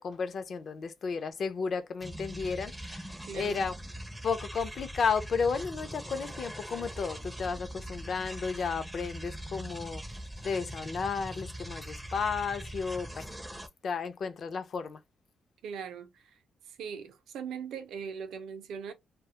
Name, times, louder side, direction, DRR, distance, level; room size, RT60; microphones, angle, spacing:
voice 1, 0.0-3.1 3.3-3.7 4.2-10.0 10.4-13.3 13.8-15.0, left 5 dB, 55° left, 0.5 m, -33 dB
sound 1, 2.0-13.7, right 1 dB, 5° right, 0.4 m, -42 dB
voice 2, 3.3-3.6 15.6-16.4 16.7-18.9, right 6 dB, 85° right, 0.5 m, -40 dB
2.2 x 2.0 x 2.8 m
cardioid pair, 105°, 0 cm